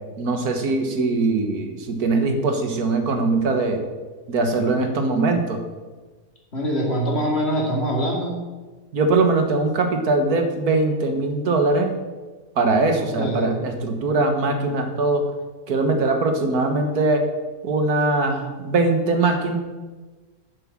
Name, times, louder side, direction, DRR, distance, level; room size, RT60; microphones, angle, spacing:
voice 1, 0.2-3.8 4.3-5.6 8.9-12.0 12.6-15.3 15.7-17.3 17.6-19.6, right 3 dB, 85° right, 5 dB, 1.9 m, -21 dB
voice 2, 6.5-8.3 13.0-13.5, equal, 45° left, -1 dB, 3.0 m, -24 dB
9.9 x 7.3 x 7.5 m, 1.3 s
omnidirectional pair, 1.6 m